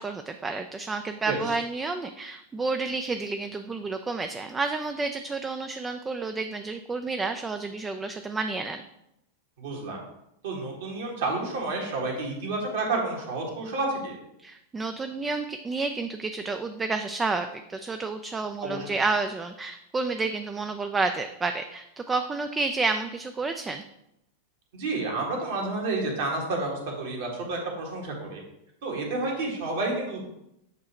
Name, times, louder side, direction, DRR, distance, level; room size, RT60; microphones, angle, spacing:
voice 1, 0.0-8.8 14.4-23.8, right 3 dB, 15° right, 7 dB, 0.3 m, -30 dB
voice 2, 9.6-10.0 10.4-14.2 18.6-18.9 24.7-28.4 28.8-30.2, right 3 dB, 55° right, -1 dB, 1.6 m, -30 dB
8.1 x 2.8 x 4.3 m, 0.84 s
figure-of-eight pair, 90°, 0 cm